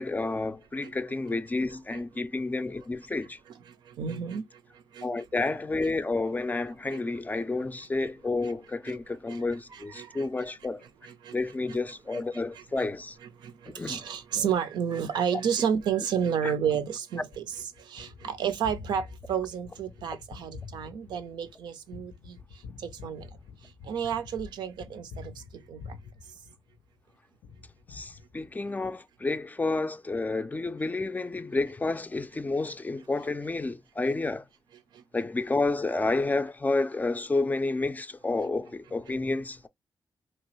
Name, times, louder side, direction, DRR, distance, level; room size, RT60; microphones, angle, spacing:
voice 1, 0.0-3.4 5.0-10.8 11.3-13.2 13.7-14.0 15.3-15.4 16.4-16.5 27.9-34.5 35.1-39.7, left 3 dB, 20° left, 0.3 m, -30 dB
voice 2, 3.7-5.1 6.9-7.0 8.0-8.1 8.4-8.5 8.9-9.0 9.3-9.4 9.7-10.3 11.0-11.4 12.1-12.2 12.8-12.9 13.4-23.3 23.6-26.0 34.9-35.0, right 8 dB, 90° right, 0.5 m, -32 dB
Gunshot gunfire, 17.3-27.0 27.4-28.8, left 5 dB, 90° left, 0.5 m, -47 dB
2.9 x 2.3 x 2.9 m
cardioid pair, 65°, 7 cm